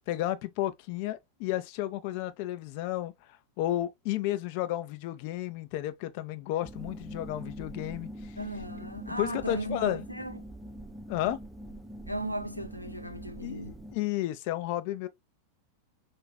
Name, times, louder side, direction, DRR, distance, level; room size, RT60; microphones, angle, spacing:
voice 1, 0.1-3.1 3.6-8.3 9.2-10.0 11.1-11.4 13.4-15.1, left 14 dB, 45° left, 0.5 m, -32 dB
sound 1, 6.6-14.0, equal, 5° right, 0.5 m, -44 dB
voice 2, 8.4-10.4 12.1-13.7, right 1 dB, 90° right, 0.4 m, -36 dB
4.7 x 2.5 x 2.3 m
figure-of-eight pair, 90°, 0 cm